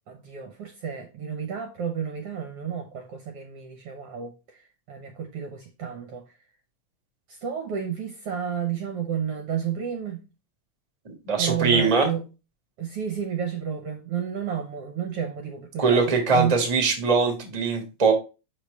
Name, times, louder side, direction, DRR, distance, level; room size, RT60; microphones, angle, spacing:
voice 1, 0.1-6.2 7.3-10.2 11.4-12.2 12.8-16.6, right 8 dB, 65° right, 1.5 m, -31 dB
voice 2, 11.0-12.1 15.8-18.1, right 4 dB, 20° right, 0.9 m, -22 dB
5.8 x 4.4 x 4.6 m
omnidirectional pair, 3.5 m